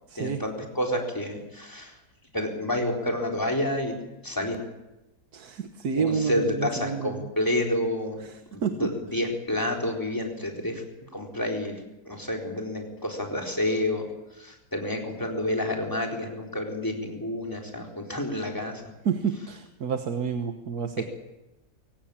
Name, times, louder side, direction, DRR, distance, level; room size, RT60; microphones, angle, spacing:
voice 1, 0.2-2.0 2.3-4.0 4.2-4.6 6.0-8.2 8.5-10.8 11.1-11.7 12.1-14.0 14.3-18.8, left 1 dB, 10° left, 0 dB, 4.2 m, -29 dB
voice 2, 5.3-7.3 8.6-8.7 19.1-21.0, right 6 dB, 80° right, 7 dB, 1.8 m, -29 dB
24.0 x 17.0 x 8.9 m, 0.98 s
omnidirectional pair, 1.6 m